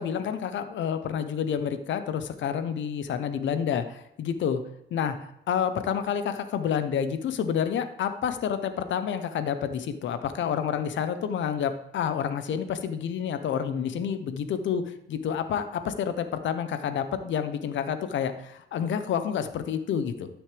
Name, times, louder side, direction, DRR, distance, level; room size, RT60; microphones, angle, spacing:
voice 1, 0.0-4.6 4.9-5.2 5.5-20.3, left 8 dB, 70° left, 10 dB, 0.9 m, -29 dB
13.0 x 6.3 x 3.4 m, 0.81 s
cardioid pair, 90°, 20 cm